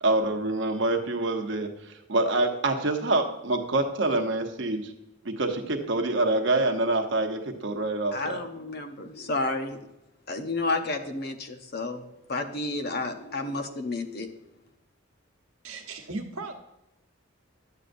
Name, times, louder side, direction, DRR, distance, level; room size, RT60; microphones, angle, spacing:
voice 1, 0.0-1.7 2.1-4.9 5.2-8.4, right 2 dB, 60° right, 4 dB, 0.9 m, -26 dB
voice 2, 8.1-9.8 10.3-14.3, left 2 dB, 50° left, 7 dB, 0.8 m, -31 dB
voice 3, 15.6-16.5, right 3 dB, 90° right, 3 dB, 1.2 m, -36 dB
11.5 x 7.7 x 2.6 m, 0.93 s
head